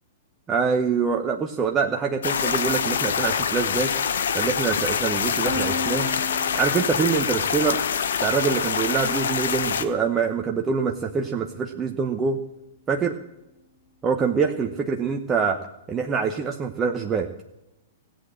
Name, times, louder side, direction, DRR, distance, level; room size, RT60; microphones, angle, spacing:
voice 1, 0.5-3.9 4.3-6.1 6.5-7.8 8.2-12.4 12.9-13.1 14.0-15.6 15.9-17.3, right 5 dB, 20° right, 3 dB, 1.0 m, -25 dB
sound 1, 2.2-9.8, left 7 dB, 65° left, 1.0 m, -25 dB
Piano, 5.4-11.2, left 1 dB, 45° left, 4.2 m, -38 dB
16.5 x 8.4 x 7.6 m, 0.90 s
figure-of-eight pair, 105°, 0 cm